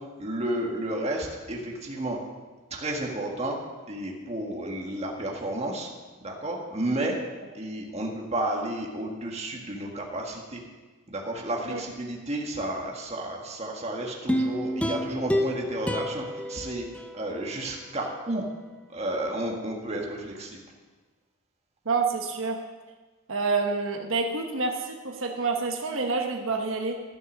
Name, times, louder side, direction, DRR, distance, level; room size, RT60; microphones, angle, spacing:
voice 1, 0.2-2.2 2.7-3.5 3.9-5.9 6.2-7.1 7.5-10.6 11.1-16.8 17.1-18.5 18.9-20.6, right 1 dB, 30° right, 0 dB, 1.6 m, -32 dB
sound 1, 14.3-17.6 18.0-18.1, left 1 dB, 5° left, 0.6 m, -29 dB
voice 2, 21.8-22.6 23.3-27.0, right 4 dB, 85° right, 3 dB, 1.1 m, -28 dB
13.0 x 6.7 x 6.3 m, 1.3 s
head